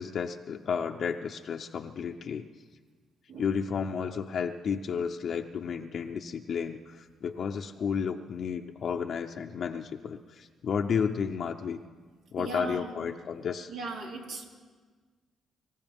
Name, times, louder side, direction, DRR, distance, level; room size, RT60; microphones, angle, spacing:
voice 1, 0.0-2.4 3.4-11.8 12.3-13.7, left 6 dB, 60° left, 3 dB, 0.6 m, -32 dB
voice 2, 12.4-12.9 13.7-14.4, right 3 dB, 80° right, 0 dB, 2.8 m, -38 dB
25.5 x 14.5 x 3.6 m, 1.5 s
cardioid pair, 90°, 0 cm